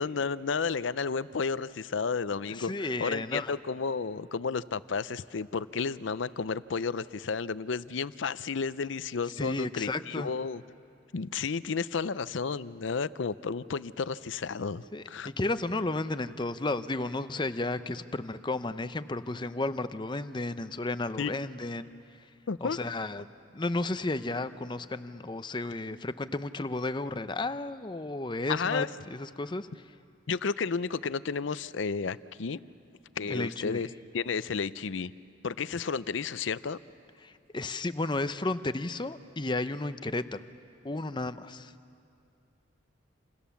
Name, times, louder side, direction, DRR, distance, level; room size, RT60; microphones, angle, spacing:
voice 1, 0.0-10.6 11.1-15.3 21.2-21.3 22.5-22.8 28.5-28.9 30.3-32.6 33.2-33.9 34.1-35.1 35.4-36.8, left 5 dB, 70° left, 16 dB, 0.6 m, -32 dB
voice 2, 2.5-3.5 9.4-10.3 14.9-21.9 22.6-23.2 23.5-29.7 33.3-33.8 37.2-40.4 40.8-41.7, left 2 dB, 25° left, 11 dB, 0.6 m, -33 dB
28.0 x 27.5 x 7.1 m, 2.4 s
head